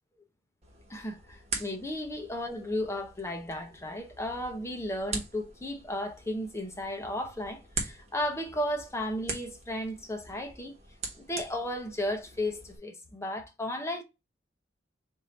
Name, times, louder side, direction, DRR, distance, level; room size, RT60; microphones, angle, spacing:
sound 1, 0.6-12.8, right 3 dB, 35° right, 1.2 m, -43 dB
voice 1, 0.9-10.8 11.2-14.0, left 1 dB, 15° left, 0.7 m, -34 dB
3.7 x 2.6 x 4.2 m
head